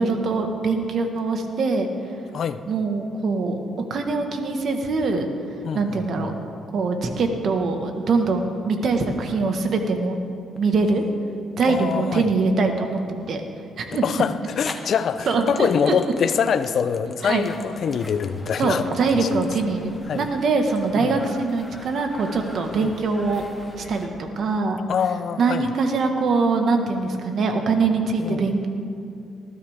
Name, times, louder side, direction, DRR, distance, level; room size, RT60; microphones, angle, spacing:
voice 1, 0.0-1.9 2.7-3.6 3.9-5.3 5.7-6.3 6.7-10.2 10.6-11.0 11.6-13.0 13.3-13.4 13.8-14.0 15.3-16.0 17.2-17.4 18.6-23.4 23.8-24.8 25.4-28.7, right 4 dB, 60° right, 5 dB, 1.6 m, -23 dB
voice 2, 5.6-6.3 11.7-12.3 14.0-18.8 19.1-19.3 20.1-20.3 21.0-21.2 22.8-22.9 24.9-25.6 28.2-28.5, left 7 dB, 60° left, 12 dB, 0.7 m, -24 dB
sound 1, 10.6-11.1 11.9-12.0 13.9-14.0 14.7-20.9, left 3 dB, 30° left, 1.2 m, -41 dB
sound 2, 17.4-24.1, left 1 dB, 5° left, 2.1 m, -44 dB
19.5 x 12.5 x 3.7 m, 2.6 s
cardioid pair, 90°, 0 cm